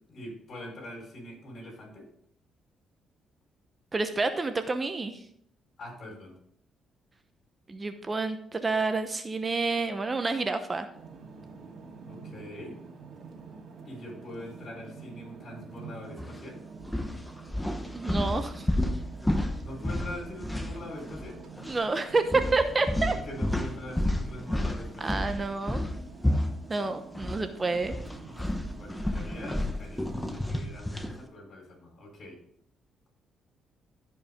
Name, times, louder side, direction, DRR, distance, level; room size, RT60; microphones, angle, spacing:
voice 1, 0.1-2.0 5.8-6.3 12.1-12.8 13.8-16.6 19.6-21.4 23.0-25.2 28.6-32.4, left 1 dB, 55° left, 1 dB, 4.5 m, -43 dB
voice 2, 3.9-5.2 7.7-10.9 17.9-18.7 21.7-23.1 25.0-25.8 26.7-27.9, right 3 dB, 25° right, 8 dB, 0.9 m, -29 dB
sound 1, 10.9-30.5, right 4 dB, 60° right, 2.3 m, -47 dB
sound 2, 16.2-16.4 16.8-21.3 21.6-21.8 22.3-27.4 27.7-31.2, left 1 dB, 5° left, 1.1 m, -31 dB
14.5 x 5.5 x 3.7 m, 0.67 s
cardioid pair, 90°, 0 cm